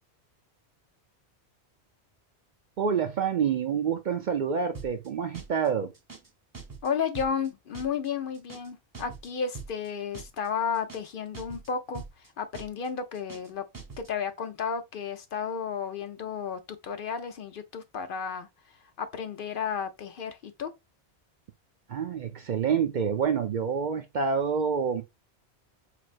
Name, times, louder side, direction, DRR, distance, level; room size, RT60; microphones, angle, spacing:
voice 1, 2.8-5.9 21.9-25.0, right 6 dB, 55° right, 0.5 m, -27 dB
sound 1, 4.7-5.1 5.3-5.7 5.9-6.3 6.5-6.9 7.1-7.5 7.7-8.1 8.3-8.7 8.9-9.3 9.5-9.9 10.1-10.5 10.7-11.1 11.3-11.7 11.9-12.3 12.5-12.9 13.1-13.5 13.7-14.1, right 4 dB, 20° right, 0.7 m, -43 dB
voice 2, 6.8-13.6 14.0-18.5 19.0-20.7, left 6 dB, 60° left, 0.7 m, -33 dB
4.3 x 3.3 x 2.4 m
omnidirectional pair, 1.1 m